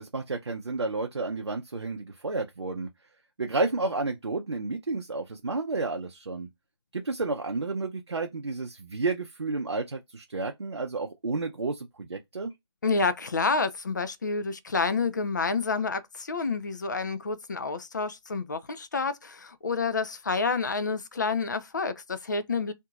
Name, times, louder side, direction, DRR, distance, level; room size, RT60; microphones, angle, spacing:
voice 1, 0.0-2.9 3.4-6.5 6.9-12.5, right 3 dB, 70° right, 0.5 m, -31 dB
voice 2, 12.8-22.7, left 4 dB, 40° left, 0.4 m, -29 dB
2.7 x 2.6 x 2.3 m
figure-of-eight pair, 150°, 15 cm